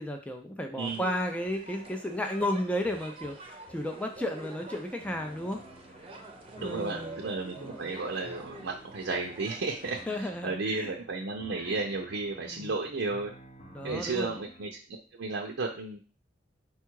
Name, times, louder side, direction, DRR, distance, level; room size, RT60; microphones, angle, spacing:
voice 1, 0.0-5.6 6.0-6.1 6.6-7.2 7.6-8.0 10.1-10.9 11.6-11.7 12.5-12.7 13.7-14.4, left 1 dB, 5° left, 3 dB, 0.4 m, -34 dB
sound 1, 0.8-10.0, right 2 dB, 30° right, 0.7 m, -47 dB
sound 2, 5.0-14.7, equal, 35° left, 0.7 m, -52 dB
voice 2, 6.6-13.3 13.8-14.7 15.1-16.0, right 3 dB, 70° right, -1 dB, 0.6 m, -33 dB
4.5 x 2.3 x 4.5 m, 0.37 s
head